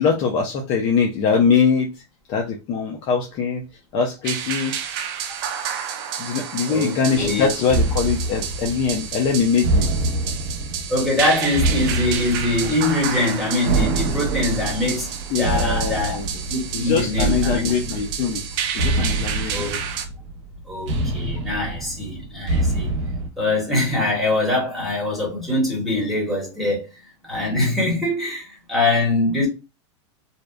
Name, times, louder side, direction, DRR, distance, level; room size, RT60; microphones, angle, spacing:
voice 1, 0.0-2.0 2.3-3.7 3.9-4.8 6.2-9.9 15.3-16.3 16.7-18.4 18.7-19.7, left 6 dB, 35° left, 0.4 m, -22 dB
sound 1, 4.2-20.0, right 8 dB, 50° right, 0.5 m, -30 dB
voice 2, 6.7-7.5 10.9-15.1 15.4-16.2 16.5-17.7 19.0-19.1 19.5-19.8 20.7-22.9 23.4-26.9 27.2-29.5, left 2 dB, ahead, 1.2 m, -23 dB
sound 2, 7.7-23.3, right 2 dB, 80° right, 0.7 m, -26 dB
2.7 x 2.1 x 2.2 m
supercardioid pair, 150°, 15 cm